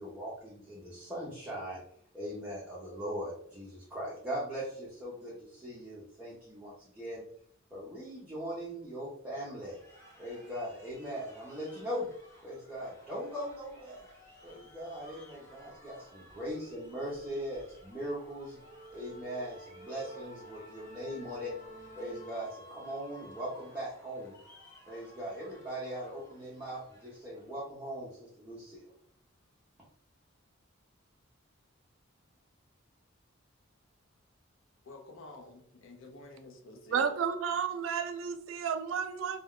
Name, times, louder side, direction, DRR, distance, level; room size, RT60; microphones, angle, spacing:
voice 1, 0.0-1.8 2.1-7.2 7.7-9.8 10.2-12.1 12.4-14.1 14.4-18.6 18.9-21.5 22.0-24.4 24.9-28.8, equal, 5° right, -8 dB, 0.7 m, -40 dB
sound 1, 9.6-27.6, left 1 dB, 15° left, 1.0 m, -58 dB
sound 2, 13.5-13.7 14.0-22.3, right 1 dB, 40° left, 0.9 m, -52 dB
voice 2, 34.9-37.2, left 2 dB, 80° left, 3 dB, 0.6 m, -49 dB
voice 3, 36.9-39.4, right 7 dB, 80° right, 8 dB, 0.4 m, -32 dB
2.3 x 2.2 x 3.6 m, 0.64 s
head